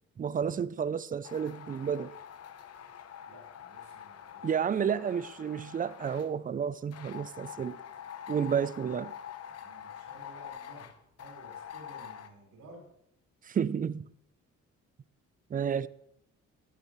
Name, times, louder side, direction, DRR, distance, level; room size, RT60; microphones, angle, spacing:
voice 1, 0.2-2.1 4.4-7.8 8.3-9.1 13.5-14.1 15.5-15.9, right 7 dB, 30° right, 0.4 m, -31 dB
sound 1, 1.2-6.3 6.9-12.3, left 9 dB, 55° left, 0.9 m, -46 dB
voice 2, 3.3-4.5 9.6-12.9, right 1 dB, 70° right, 4.7 m, -54 dB
14.0 x 11.0 x 3.1 m
cardioid pair, 90°, 30 cm